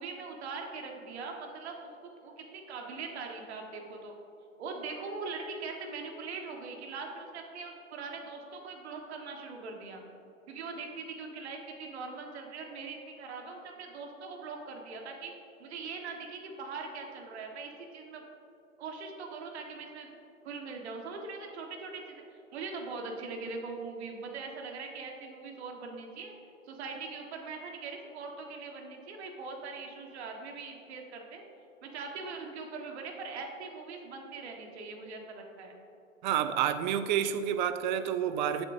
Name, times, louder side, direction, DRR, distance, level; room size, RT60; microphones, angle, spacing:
voice 1, 0.0-1.9 2.2-4.1 4.6-10.0 10.5-15.3 15.6-18.2 18.8-20.1 20.4-22.2 22.5-26.3 26.7-31.4 31.8-35.7, right 4 dB, 55° right, 2 dB, 1.5 m, -41 dB
voice 2, 36.2-38.6, right 9 dB, 35° right, 11 dB, 0.5 m, -29 dB
14.5 x 8.7 x 2.7 m, 2.9 s
hypercardioid pair, 120°, 40 cm